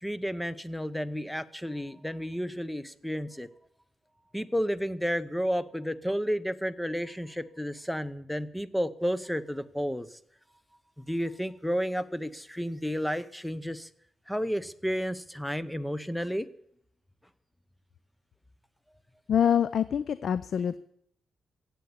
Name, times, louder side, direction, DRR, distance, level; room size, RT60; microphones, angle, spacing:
voice 1, 0.0-3.5 4.3-10.2 11.0-13.9 14.3-16.5, equal, 5° left, 15 dB, 0.8 m, -32 dB
voice 2, 19.3-20.8, left 8 dB, 60° left, 15 dB, 0.5 m, -25 dB
16.0 x 8.4 x 9.6 m, 0.71 s
cardioid pair, 120°, 0 cm